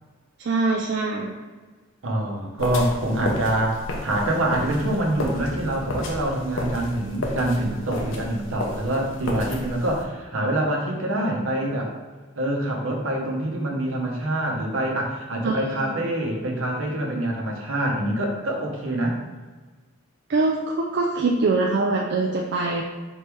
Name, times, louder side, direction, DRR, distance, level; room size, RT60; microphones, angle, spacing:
voice 1, 0.4-1.3 15.4-16.1 20.3-22.8, right 3 dB, 50° right, 0 dB, 0.3 m, -23 dB
voice 2, 2.0-11.9 12.4-19.2, right 1 dB, 70° right, 0 dB, 0.8 m, -25 dB
sound 1, 2.6-10.0, left 1 dB, 65° left, 0.7 m, -32 dB
4.2 x 3.0 x 3.4 m, 1.4 s
head